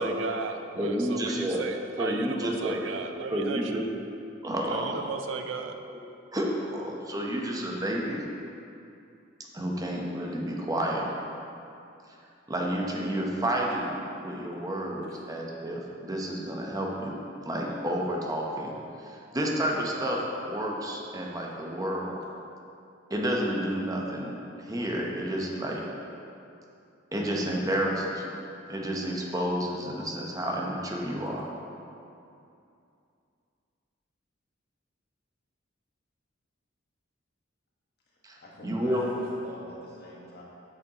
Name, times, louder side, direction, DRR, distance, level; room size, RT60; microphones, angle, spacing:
voice 1, 0.0-3.9 4.7-5.7, right 4 dB, 75° right, 6 dB, 0.5 m, -36 dB
voice 2, 0.8-1.6 2.0-2.8 3.3-3.8 4.4-5.0 5.9-6.0 6.3-8.3 9.5-11.1 12.5-17.2 17.5-18.7 19.0-22.2 23.1-25.8 27.1-28.4 28.7-31.5 38.2-38.4 38.6-39.1, equal, 20° right, -2 dB, 0.7 m, -30 dB
voice 3, 38.4-40.4, left 1 dB, 55° left, -4 dB, 1.4 m, -45 dB
8.5 x 6.5 x 2.9 m, 2.6 s
head